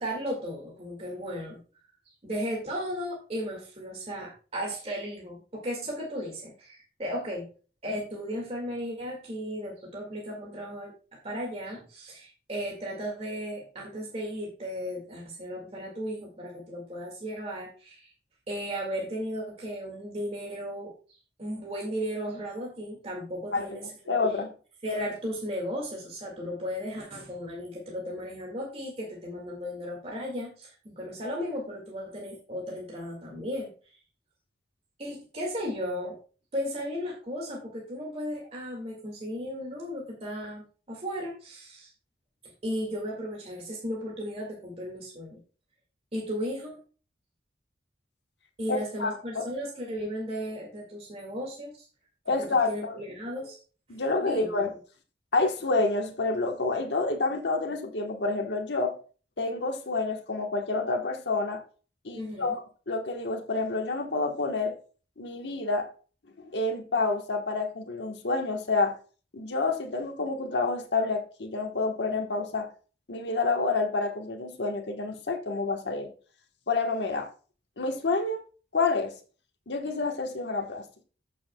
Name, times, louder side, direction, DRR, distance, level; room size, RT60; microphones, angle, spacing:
voice 1, 0.0-1.6 2.2-7.5 7.8-10.9 11.2-18.1 18.5-20.9 21.4-23.9 24.8-34.0 35.0-36.2 36.5-41.9 42.4-45.4 46.1-46.8 48.6-51.9 52.4-53.6 54.2-54.5 62.1-62.6, equal, 35° right, 2.0 m, -35 dB
voice 2, 24.1-24.5 48.7-49.4 52.3-53.0 53.9-54.7 55.3-59.0 59.4-61.6 62.0-64.8 65.2-65.9 66.4-68.9 69.3-72.7 73.1-76.1 76.7-77.3 77.8-78.4 78.7-79.1 79.7-81.0, left 3 dB, 70° left, 1.2 m, -28 dB
14.5 x 6.3 x 2.3 m
head